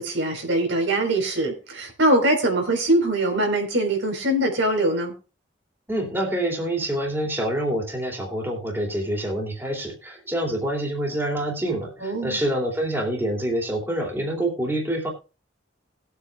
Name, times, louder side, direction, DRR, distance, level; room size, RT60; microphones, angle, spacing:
voice 1, 0.0-5.1 12.0-12.4, right 1 dB, 85° right, 3 dB, 4.1 m, -22 dB
voice 2, 5.9-15.1, right 1 dB, 10° right, 0 dB, 2.7 m, -26 dB
20.0 x 8.3 x 2.3 m, 0.33 s
head